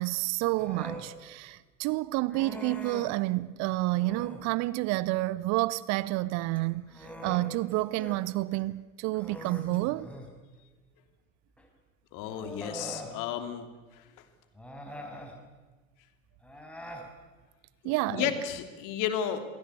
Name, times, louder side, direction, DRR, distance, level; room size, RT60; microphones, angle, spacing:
voice 1, 0.0-10.1 17.8-18.3, right 19 dB, 40° right, 0.7 m, -29 dB
Human voice, 0.6-1.1 2.3-3.2 3.9-4.5 6.4-8.2 8.5-8.7 9.1-10.4 11.6-11.7 12.3-13.2 14.5-15.4 16.4-17.1, equal, 5° left, 5.7 m, -43 dB
voice 2, 12.1-14.1 17.8-19.5, left 9 dB, 50° left, 3.1 m, -33 dB
28.0 x 21.5 x 8.4 m
figure-of-eight pair, 70°, 40 cm